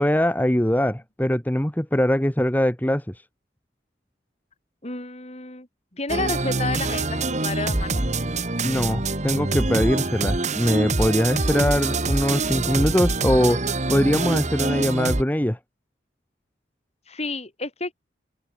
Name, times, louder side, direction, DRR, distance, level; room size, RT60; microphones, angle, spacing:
voice 1, 0.0-3.1 8.6-13.6 13.9-15.6, equal, 10° left, 1.2 m, -22 dB
voice 2, 4.8-5.7 5.9-8.0 17.1-17.9, left 3 dB, 35° left, 3.7 m, -30 dB
sound 1, 6.1-15.2, right 3 dB, 40° right, 1.9 m, -25 dB
open air
head